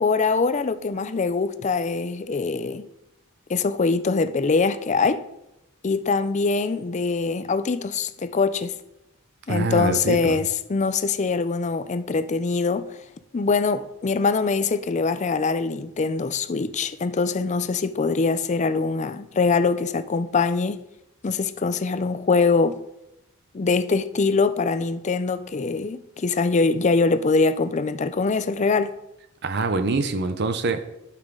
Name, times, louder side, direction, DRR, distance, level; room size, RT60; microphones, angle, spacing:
voice 1, 0.0-2.8 3.5-5.3 5.8-8.8 9.5-12.9 13.3-20.8 21.2-22.8 23.5-28.9, left 4 dB, 35° left, 0.4 m, -23 dB
voice 2, 9.5-10.4 29.4-31.0, right 3 dB, 55° right, 0.7 m, -25 dB
12.0 x 5.9 x 3.7 m
head